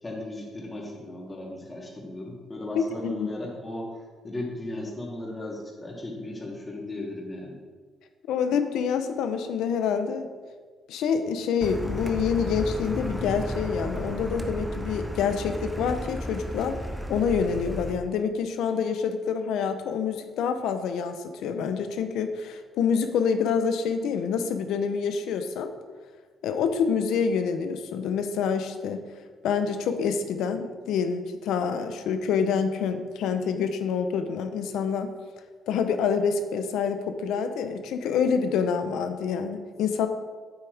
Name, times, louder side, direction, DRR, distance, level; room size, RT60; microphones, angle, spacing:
voice 1, 0.0-3.9 4.2-7.6, left 2 dB, 20° left, -3 dB, 2.9 m, -36 dB
voice 2, 2.7-3.3 8.3-10.3 10.9-16.8 17.1-25.7 26.4-29.0 29.4-35.1 35.7-40.1, left 6 dB, 85° left, 8 dB, 0.8 m, -27 dB
Car, 11.6-17.9, equal, 5° right, 1.0 m, -33 dB
9.1 x 8.1 x 3.5 m, 1.5 s
cardioid pair, 90°, 0 cm